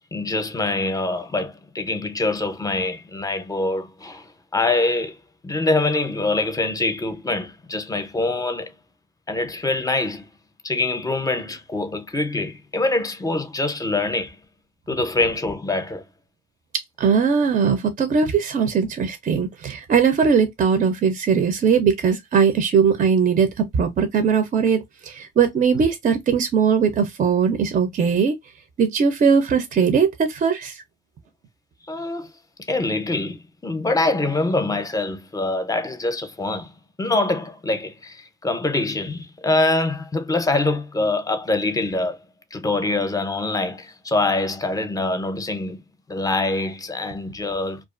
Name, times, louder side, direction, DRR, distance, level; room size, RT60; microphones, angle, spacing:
voice 1, 0.0-5.2 5.4-8.8 9.3-10.3 10.6-14.4 14.9-16.0 31.9-32.3 32.7-36.7 37.0-42.2 42.5-45.8 46.1-47.8, left 2 dB, 20° left, 0.6 m, -24 dB
voice 2, 17.0-28.4 28.8-30.8, right 6 dB, 45° right, 0.5 m, -20 dB
2.4 x 2.3 x 2.4 m
cardioid pair, 90°, 20 cm